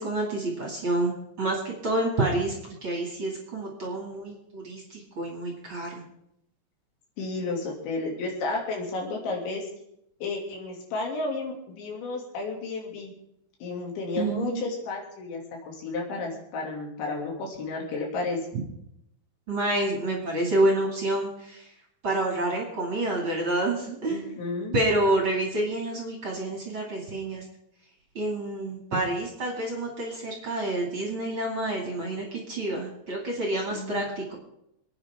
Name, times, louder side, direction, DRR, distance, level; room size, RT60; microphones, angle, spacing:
voice 1, 0.0-6.0 14.2-14.6 19.5-21.6 22.0-24.2 24.7-27.4 28.1-34.3, right 1 dB, 35° right, -1 dB, 2.9 m, -28 dB
voice 2, 7.2-9.7 10.2-13.1 13.6-15.4 15.7-18.4 24.1-24.7 33.7-34.0, left 3 dB, 90° left, 0 dB, 5.2 m, -32 dB
27.5 x 9.7 x 3.8 m, 0.77 s
omnidirectional pair, 5.1 m